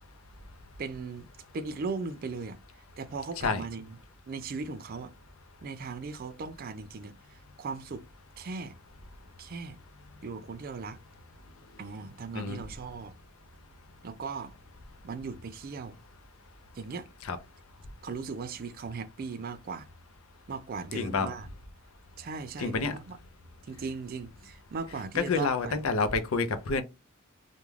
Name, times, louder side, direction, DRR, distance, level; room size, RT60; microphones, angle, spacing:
voice 1, 0.8-1.3 1.5-2.6 3.0-3.9 4.3-5.1 5.6-8.0 8.4-8.7 9.4-9.8 10.2-11.0 11.8-13.1 14.0-14.5 15.0-16.0 16.8-17.1 18.0-19.9 20.5-21.5 22.2-23.2 23.6-25.8, right 4 dB, 45° right, 0.4 m, -38 dB
voice 2, 20.9-21.3 22.6-22.9 25.1-26.8, left 4 dB, 75° left, 0.5 m, -28 dB
2.4 x 2.2 x 3.1 m
head